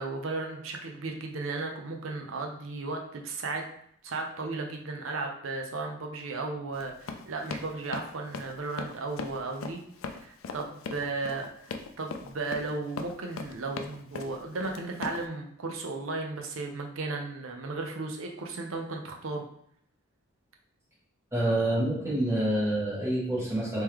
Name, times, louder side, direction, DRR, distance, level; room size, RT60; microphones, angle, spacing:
voice 1, 0.0-3.6 4.0-19.4, right 3 dB, 75° right, 2 dB, 0.6 m, -35 dB
Run, 6.7-15.2, left 4 dB, 70° left, 0.4 m, -39 dB
voice 2, 21.3-23.8, right 1 dB, 15° right, -7 dB, 1.3 m, -27 dB
3.7 x 3.1 x 3.0 m, 0.67 s
head